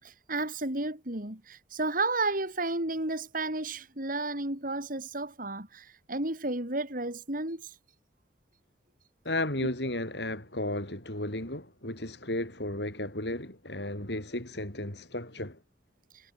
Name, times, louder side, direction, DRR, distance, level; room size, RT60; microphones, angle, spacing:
voice 1, 0.0-7.7, right 2 dB, 50° right, 4.5 m, -32 dB
voice 2, 9.2-15.6, left 1 dB, 65° left, 7.3 m, -34 dB
head